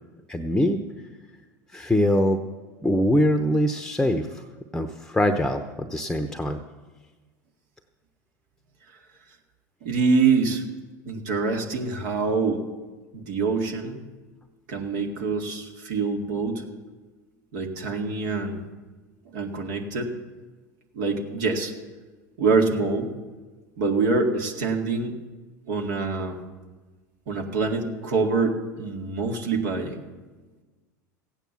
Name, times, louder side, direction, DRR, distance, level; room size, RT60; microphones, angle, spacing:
voice 1, 0.3-0.8 1.7-2.4 2.8-4.4 4.7-6.6, equal, 5° left, 8 dB, 0.8 m, -23 dB
voice 2, 9.8-10.6 11.1-12.6 13.1-14.0 14.7-16.6 17.5-18.6 19.3-20.1 20.9-21.7 22.4-23.1 23.8-25.1 25.7-26.4 27.3-30.0, right 4 dB, 70° right, 3 dB, 2.1 m, -25 dB
15.0 x 9.2 x 7.1 m, 1.3 s
hypercardioid pair, 90°, 10 cm